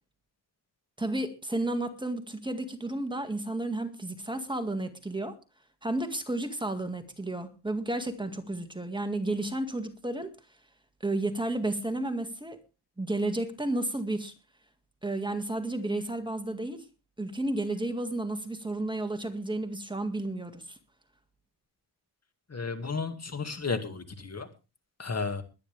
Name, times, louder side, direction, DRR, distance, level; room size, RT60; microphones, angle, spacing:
voice 1, 1.0-5.4 5.8-10.3 11.0-12.6 13.0-14.3 15.0-16.8 17.2-20.8, right 2 dB, 10° right, 6 dB, 2.0 m, -32 dB
voice 2, 22.5-24.5 25.0-25.4, left 4 dB, 40° left, 7 dB, 2.2 m, -33 dB
21.5 x 10.0 x 3.5 m, 0.31 s
wide cardioid pair, 105°, 41 cm